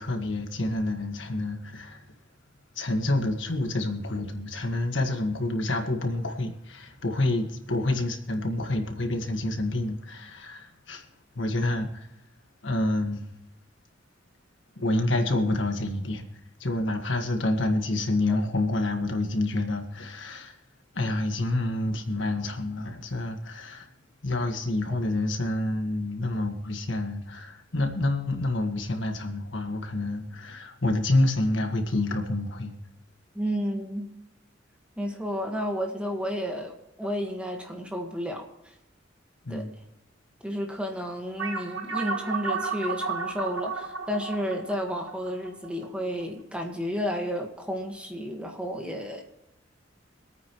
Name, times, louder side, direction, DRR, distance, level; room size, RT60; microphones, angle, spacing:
voice 1, 0.0-2.0 2.7-11.0 11.3-12.1 12.6-13.2 14.8-16.2 16.6-20.6 20.9-23.9 24.2-32.8 39.4-39.7, left 2 dB, 70° left, 5 dB, 1.6 m, -28 dB
voice 2, 33.3-34.1 35.0-38.7 39.5-39.8 40.4-49.2, equal, 5° right, 2 dB, 1.5 m, -32 dB
sound 1, 41.4-46.2, right 4 dB, 80° right, 1.6 m, -33 dB
25.5 x 9.2 x 3.1 m, 0.85 s
head